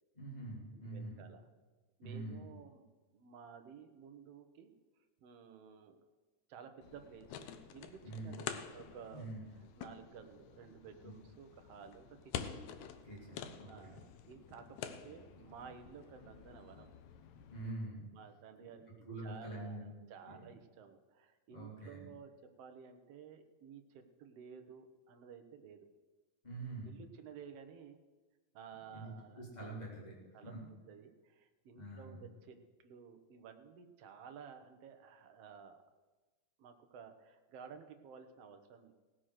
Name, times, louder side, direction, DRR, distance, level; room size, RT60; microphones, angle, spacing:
voice 1, 0.1-1.2 2.0-2.5 8.0-8.4 9.1-9.5 11.0-11.1 13.0-14.0 17.5-18.1 19.1-19.9 20.2-20.4 21.5-22.0 26.4-26.9 28.9-30.1 30.4-30.6 31.7-32.2, right 2 dB, 15° left, -4 dB, 3.9 m, -45 dB
voice 2, 0.7-1.4 2.0-2.9 3.1-4.7 5.2-6.0 6.5-8.5 8.7-9.3 9.8-12.6 13.7-16.9 17.3-17.4 18.1-25.9 26.8-28.0 28.5-29.7 30.3-35.8 36.6-38.9, right 7 dB, 60° right, 6 dB, 2.0 m, -54 dB
sound 1, 6.8-17.7, left 8 dB, 75° left, 2.1 m, -48 dB
17.5 x 7.6 x 6.5 m, 1.3 s
omnidirectional pair, 3.4 m